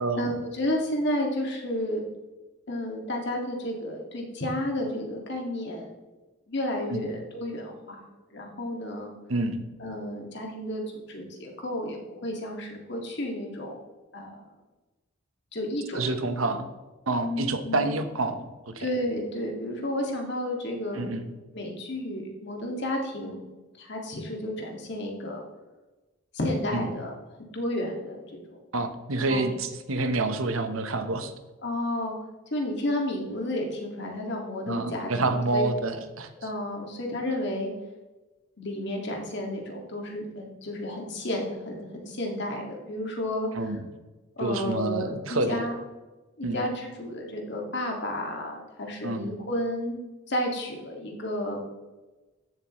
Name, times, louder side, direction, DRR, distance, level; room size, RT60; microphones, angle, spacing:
voice 1, 0.0-2.0 2.7-5.9 6.5-8.0 8.3-9.1 9.8-10.8 11.1-13.8 14.1-14.4 15.5-16.0 17.2-18.0 18.8-21.1 21.5-23.5 23.8-25.4 26.3-27.1 27.5-28.6 29.3-29.4 31.6-32.2 32.5-35.6 36.4-37.7 38.6-43.5 44.4-45.7 46.4-50.0 50.3-51.6, left 1 dB, 55° left, 1 dB, 2.0 m, -32 dB
voice 2, 9.3-9.6 15.9-16.7 17.1-18.9 20.9-21.3 26.7-26.8 28.7-31.3 34.7-36.3 43.5-43.8 44.4-45.6 46.4-46.6 49.0-49.3, right 2 dB, 85° right, 8 dB, 1.0 m, -28 dB
13.5 x 7.5 x 3.1 m, 1.2 s
head